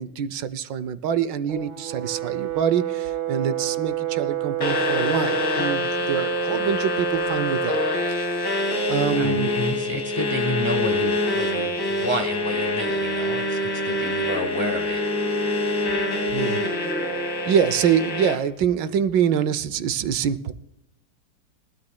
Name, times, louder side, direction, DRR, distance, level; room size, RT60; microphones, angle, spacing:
voice 1, 0.0-7.8 8.1-8.4 8.9-9.5 16.3-16.6 17.5-20.5, right 8 dB, 80° right, 14 dB, 1.4 m, -25 dB
Brass instrument, 1.5-5.7, right 13 dB, 55° right, 0.9 m, -29 dB
sound 1, 4.6-18.3, left 1 dB, 75° left, 2.9 m, -25 dB
voice 2, 9.1-15.0, equal, 25° left, 6 dB, 0.5 m, -30 dB
22.5 x 12.5 x 2.2 m, 0.90 s
omnidirectional pair, 2.0 m